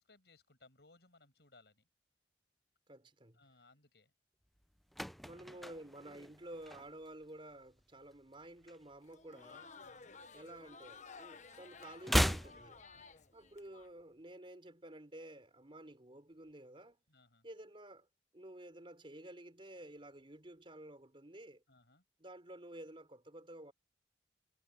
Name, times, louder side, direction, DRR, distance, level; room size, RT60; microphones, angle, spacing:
voice 1, 0.0-1.9 3.3-4.1 9.8-10.2 12.9-13.3 17.1-17.5 21.7-22.0, left 3 dB, 70° left, 7.1 m, -65 dB
voice 2, 2.9-3.4 5.2-9.7 10.3-12.8 13.3-17.0 17.4-18.1 18.3-21.6 22.2-23.7, right 1 dB, 30° right, 4.0 m, -52 dB
sound 1, 4.6-7.2 7.5-7.8 8.1-9.6 9.8-11.2 11.5-13.6 13.8-13.9, equal, ahead, 0.4 m, -37 dB
Crowd, 9.0-13.9, left 4 dB, 45° left, 1.3 m, -55 dB
head